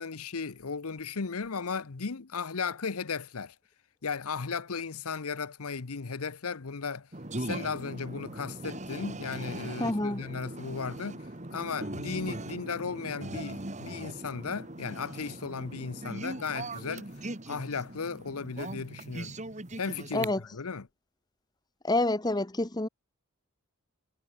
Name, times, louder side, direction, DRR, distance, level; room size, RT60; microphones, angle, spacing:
voice 1, 0.0-3.5 4.0-7.1 7.4-17.1 17.5-19.3 19.8-20.9, left 5 dB, 85° left, 0.9 m, -36 dB
sound 1, 7.1-20.2, right 1 dB, 35° right, 2.3 m, -40 dB
voice 2, 9.8-10.2 20.1-20.4 21.8-22.9, left 2 dB, 20° left, 1.1 m, -27 dB
head